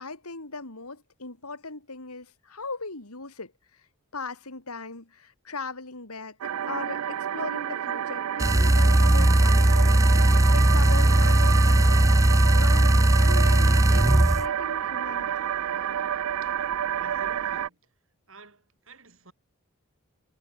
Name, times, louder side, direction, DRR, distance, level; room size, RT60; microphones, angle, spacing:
voice 1, 0.0-3.9 4.1-6.4 6.7-12.1 12.5-15.6, left 3 dB, 85° left, 3.5 m, -39 dB
sound 1, 6.4-17.7, right 9 dB, 80° right, 0.4 m, -30 dB
sound 2, 8.4-14.5, right 1 dB, 15° right, 0.5 m, -18 dB
voice 2, 16.4-17.8 18.3-19.3, right 3 dB, 65° right, 5.1 m, -51 dB
head